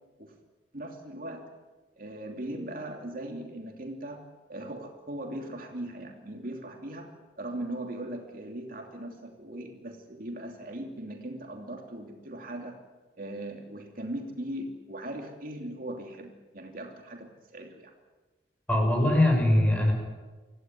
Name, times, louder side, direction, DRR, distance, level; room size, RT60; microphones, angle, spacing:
voice 1, 0.7-1.5 2.0-12.8 13.2-17.9, right 1 dB, 55° right, 2 dB, 2.9 m, -39 dB
voice 2, 18.7-19.9, left 1 dB, 10° left, 2 dB, 6.4 m, -22 dB
26.5 x 16.5 x 9.6 m, 1.3 s
head